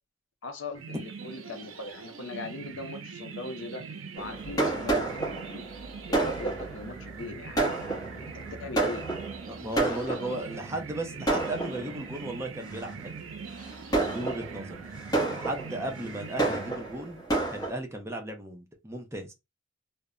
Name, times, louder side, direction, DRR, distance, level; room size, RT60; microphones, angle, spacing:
voice 1, 0.4-3.9 4.2-5.7 6.1-7.7 8.1-9.1 9.8-10.4, left 2 dB, 65° left, 0.5 m, -40 dB
sound 1, 0.7-17.3, right 5 dB, 75° right, 0.5 m, -42 dB
Fireworks, 4.2-10.6 11.3-12.2 12.7-13.0 13.6-17.7, right 2 dB, 20° left, 0.8 m, -30 dB
voice 2, 9.5-13.2 13.9-14.8 15.3-17.2 17.5-19.3, right 1 dB, 15° right, 0.5 m, -36 dB
2.1 x 2.0 x 3.5 m
head